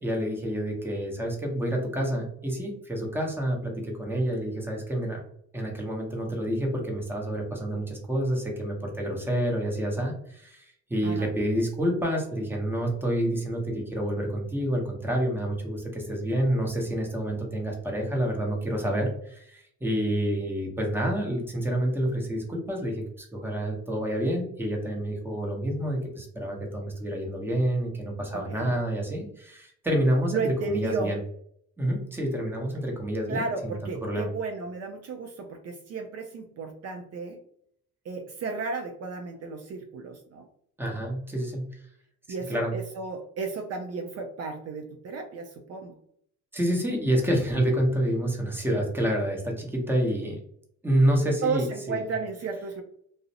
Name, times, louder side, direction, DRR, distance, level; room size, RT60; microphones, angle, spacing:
voice 1, 0.0-5.2 5.5-31.2 31.8-33.8 34.0-34.3 40.8-41.9 42.5-42.7 46.5-50.4 50.8-52.0, right 1 dB, 5° right, 0 dB, 0.8 m, -28 dB
voice 2, 28.3-28.7 30.3-31.1 33.3-37.4 38.1-40.5 42.3-46.0 51.4-52.8, right 4 dB, 55° right, 3 dB, 0.4 m, -33 dB
2.4 x 2.0 x 2.7 m, 0.67 s
cardioid pair, 90°, 30 cm